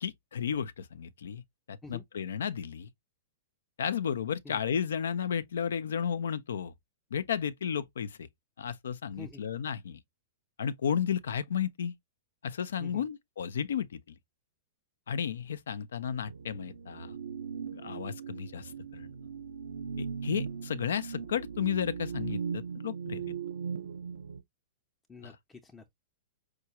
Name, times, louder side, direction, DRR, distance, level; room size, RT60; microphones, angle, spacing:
voice 1, 0.0-1.4 1.7-2.9 3.8-6.7 7.1-8.3 8.6-10.0 10.6-11.9 12.4-14.2 15.1-17.2 17.7-19.1 20.0-23.2 25.2-25.4, left 8 dB, 75° left, 0.4 m, -33 dB
sound 1, 16.3-24.4, right 6 dB, 80° right, 0.4 m, -38 dB
voice 2, 25.1-25.9, left 3 dB, 15° left, 0.6 m, -48 dB
4.7 x 2.2 x 2.8 m
hypercardioid pair, 110°, 0 cm